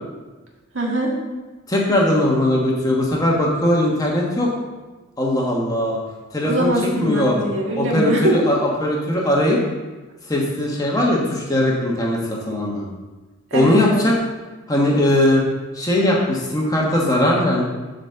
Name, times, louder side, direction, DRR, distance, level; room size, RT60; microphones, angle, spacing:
voice 1, 0.7-1.1 6.4-8.4 13.5-14.0, right 1 dB, 65° right, -1 dB, 1.7 m, -22 dB
voice 2, 1.7-4.5 5.2-6.0 6.3-6.7 7.0-7.4 7.7-9.6 10.3-12.8 13.5-14.1 14.7-15.4 15.7-17.6, left 1 dB, 15° left, -3 dB, 1.3 m, -19 dB
8.3 x 4.1 x 6.7 m, 1.2 s
head